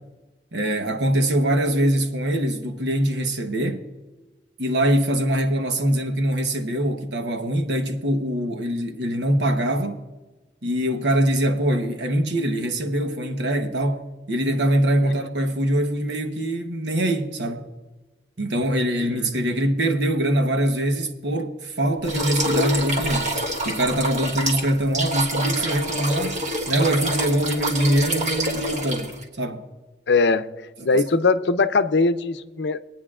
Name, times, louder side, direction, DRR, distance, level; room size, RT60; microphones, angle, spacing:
voice 1, 0.5-3.8 4.6-10.0 10.6-17.7 18.4-23.3 23.6-26.4 26.7-29.6 30.8-31.0, right 1 dB, 85° right, 1.1 m, -23 dB
sound 1, 22.0-29.2, right 1 dB, 40° right, 1.4 m, -26 dB
voice 2, 30.1-30.5 30.8-32.8, left 3 dB, 80° left, 0.6 m, -21 dB
25.0 x 9.1 x 2.4 m
head